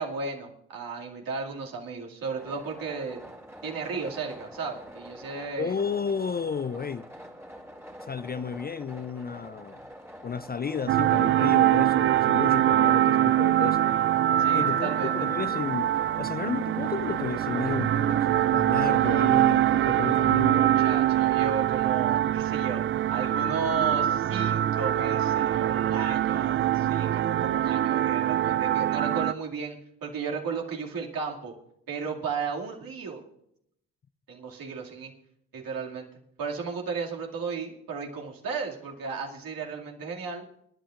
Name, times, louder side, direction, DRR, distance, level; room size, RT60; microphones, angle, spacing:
voice 1, 0.0-3.2 3.6-5.7 14.4-15.1 20.5-22.8 23.1-31.5 31.9-33.2 34.3-35.1 35.5-36.1 36.4-40.4, right 5 dB, 55° right, 0 dB, 2.5 m, -34 dB
sound 1, 2.3-21.3, equal, 5° right, 2.5 m, -46 dB
voice 2, 5.6-7.1 8.0-9.8 10.2-13.9 14.5-15.9 16.2-20.7, left 6 dB, 25° left, 13 dB, 0.5 m, -32 dB
sound 2, 10.9-29.3, right 12 dB, 35° right, 0.4 m, -24 dB
26.0 x 11.0 x 2.5 m, 0.72 s
hypercardioid pair, 45°, 40 cm